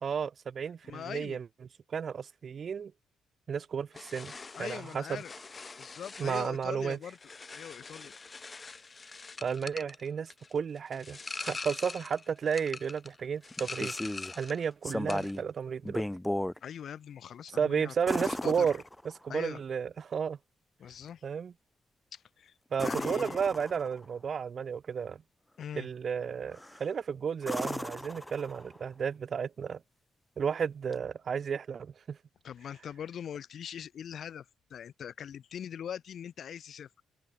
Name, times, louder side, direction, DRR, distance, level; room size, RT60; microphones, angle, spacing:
voice 1, 0.0-1.5 1.9-2.9 3.5-4.3 4.6-5.2 6.2-7.0 9.4-13.9 14.4-16.0 17.6-18.8 19.2-20.4 21.2-21.5 22.7-25.2 25.8-29.8 30.4-32.2, right 7 dB, 50° right, 0.4 m, -33 dB
voice 2, 0.8-1.4 4.5-5.3 5.8-7.2 7.5-8.1 16.6-17.9 18.2-18.8 19.3-19.6 20.8-21.2 22.1-22.5 22.8-23.4 25.6-25.9 32.4-36.9, left 9 dB, 60° left, 0.8 m, -42 dB
sound 1, 3.9-14.6 14.9-15.4, left 4 dB, 30° left, 0.3 m, -43 dB
sound 2, 13.5-14.4 14.8-15.5 15.8-16.6 18.1-19.3 22.7-24.0 26.5-26.9 27.4-28.8 30.9-31.0, left 1 dB, 5° left, 0.9 m, -35 dB
cardioid pair, 90°, 0 cm